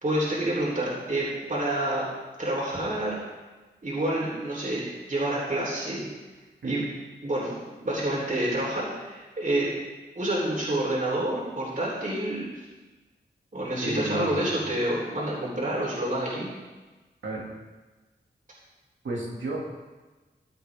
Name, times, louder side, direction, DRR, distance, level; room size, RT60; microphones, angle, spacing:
voice 1, 0.0-2.0 2.4-3.2 3.8-6.1 6.6-6.8 7.2-7.5 7.8-9.7 10.2-12.6 13.5-16.5, right 1 dB, 45° right, -5 dB, 3.7 m, -28 dB
voice 2, 13.8-14.5 17.2-17.4 19.0-19.6, right 2 dB, 90° right, -3 dB, 2.5 m, -32 dB
14.5 x 8.2 x 3.6 m, 1.2 s
cardioid pair, 45°, 19 cm